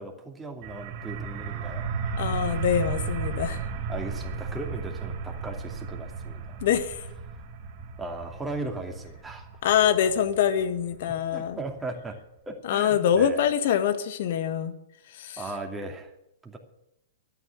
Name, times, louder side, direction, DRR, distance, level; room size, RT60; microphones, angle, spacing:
voice 1, 0.0-1.9 3.9-6.6 8.0-9.5 11.1-12.2 12.5-13.5 15.4-16.1 16.4-16.6, right 2 dB, 10° right, 1 dB, 2.7 m, -37 dB
sound 1, 0.6-12.1, right 5 dB, 50° right, 2.1 m, -34 dB
voice 2, 2.2-3.6 6.6-7.0 9.6-11.6 12.6-14.7 15.1-15.4, left 9 dB, 60° left, 10 dB, 1.6 m, -24 dB
12.5 x 9.3 x 8.9 m, 0.83 s
hypercardioid pair, 110°, 0 cm